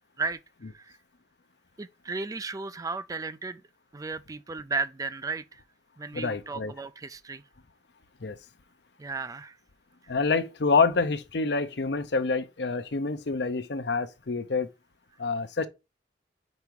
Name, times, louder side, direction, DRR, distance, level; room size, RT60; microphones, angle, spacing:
voice 1, 0.7-1.0 1.8-3.6 3.9-5.6 6.0-7.4 9.0-9.6 10.0-10.1, right 4 dB, 20° right, 0.3 m, -34 dB
voice 2, 6.1-6.7 8.2-8.4 10.1-14.7 15.2-15.7, left 4 dB, 65° left, 0.7 m, -27 dB
5.2 x 4.7 x 4.6 m
head